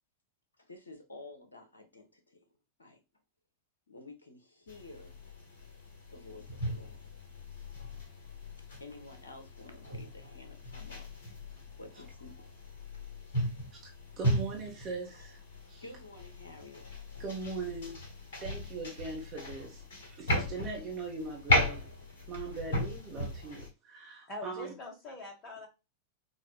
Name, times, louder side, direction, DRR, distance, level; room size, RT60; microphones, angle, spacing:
voice 1, 0.6-2.4 2.8-3.0 3.9-5.2 6.1-7.0 8.8-12.4 13.3-13.4 15.8-16.9, left 2 dB, 75° left, 0.9 m, -51 dB
sound 1, 4.7-23.7, left 1 dB, 60° left, 1.3 m, -36 dB
voice 2, 14.2-15.4 15.7-15.8 17.2-18.0 18.4-19.8 20.1-21.8 22.3-24.7, right 4 dB, 35° right, 1.1 m, -40 dB
voice 3, 24.3-25.7, left 2 dB, 25° left, 1.3 m, -43 dB
5.3 x 2.6 x 2.3 m
figure-of-eight pair, 90°, 0 cm